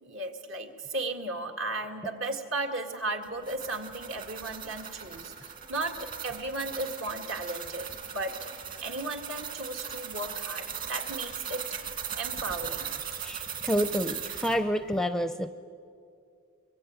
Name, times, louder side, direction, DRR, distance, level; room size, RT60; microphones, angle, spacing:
voice 1, 0.0-8.5 8.8-11.6 12.2-12.9, right 2 dB, 65° right, 5 dB, 2.1 m, -35 dB
sound 1, 3.2-14.6, right 8 dB, 40° right, 2.6 m, -38 dB
voice 2, 13.2-15.5, equal, ahead, 10 dB, 0.5 m, -29 dB
23.5 x 23.5 x 8.9 m, 2.3 s
head